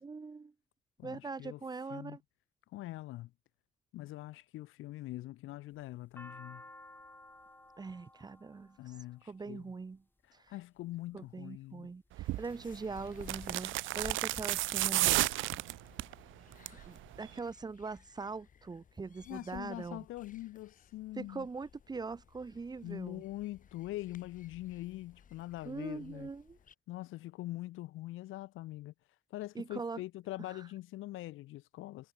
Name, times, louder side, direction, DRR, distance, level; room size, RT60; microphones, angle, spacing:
voice 1, 0.0-0.5 1.0-2.2 7.8-8.8 9.3-10.0 10.3-10.5 11.1-15.3 16.9-20.1 21.2-23.2 25.6-26.6 29.6-30.0 30.5-30.6, right 4 dB, 20° right, 0.5 m, -42 dB
voice 2, 1.0-1.6 1.9-2.2 2.7-3.3 3.9-6.6 8.8-9.7 10.5-11.9 19.3-21.5 22.8-26.3 26.9-28.9 29.3-32.1, left 16 dB, 85° left, 0.9 m, -43 dB
sound 1, 5.7-10.0 10.8-11.3 11.9-12.5 12.9-13.0 13.1-14.0, left 1 dB, 10° left, 4.6 m, -54 dB
sound 2, 12.2-26.7, left 7 dB, 40° left, 1.0 m, -56 dB
sound 3, 12.2-12.4 13.2-16.1 16.5-16.9 17.1-17.2, right 17 dB, 80° right, 0.4 m, -31 dB
cardioid pair, 90°, 20 cm